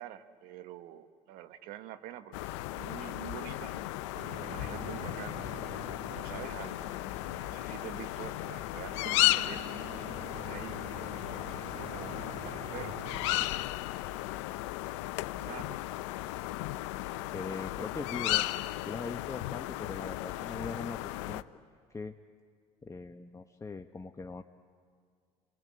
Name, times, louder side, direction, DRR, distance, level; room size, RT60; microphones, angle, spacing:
voice 1, 0.0-3.9 4.3-5.4 6.1-6.9 7.4-9.6 9.9-10.0 10.3-10.8 11.5-13.0 15.4-15.8, right 13 dB, 75° right, 11 dB, 1.3 m, -46 dB
sound 1, 2.3-21.4, left 17 dB, 85° left, 0.6 m, -35 dB
sound 2, 4.1-13.5, right 6 dB, 50° right, 1.4 m, -48 dB
voice 2, 17.3-18.5 18.9-21.4 21.9-22.2 22.8-24.4, left 4 dB, 20° left, 6 dB, 1.0 m, -41 dB
27.5 x 20.5 x 9.6 m, 2.1 s
hypercardioid pair, 70°, 15 cm